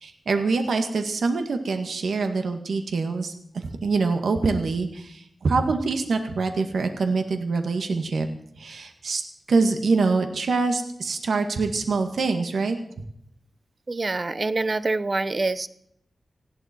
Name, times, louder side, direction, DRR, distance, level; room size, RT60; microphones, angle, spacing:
voice 1, 0.0-8.3 8.6-9.2 9.5-12.8, right 4 dB, 85° right, 6 dB, 2.0 m, -25 dB
voice 2, 13.9-15.7, right 3 dB, 40° right, 15 dB, 0.9 m, -25 dB
19.0 x 16.0 x 4.6 m, 0.72 s
wide cardioid pair, 70°, 0 cm